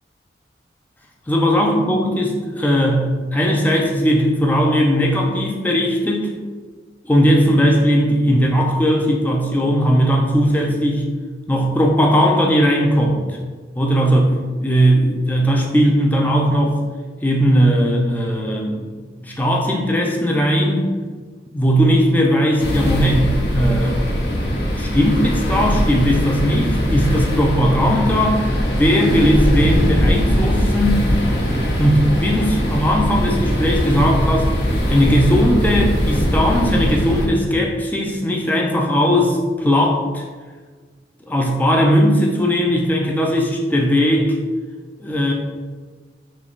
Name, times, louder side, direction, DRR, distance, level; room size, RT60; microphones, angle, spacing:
voice 1, 1.3-6.3 7.0-11.1 11.5-13.2 13.8-14.4 14.6-16.8 17.2-18.8 19.2-20.9 21.5-24.0 24.8-28.4 28.7-31.1 31.8-34.5 34.9-40.2 41.3-44.4 45.0-45.3, equal, 10° left, 0 dB, 0.4 m, -18 dB
sound 1, 22.6-37.3, equal, 70° left, 0.9 m, -20 dB
3.2 x 2.9 x 3.8 m, 1.5 s
head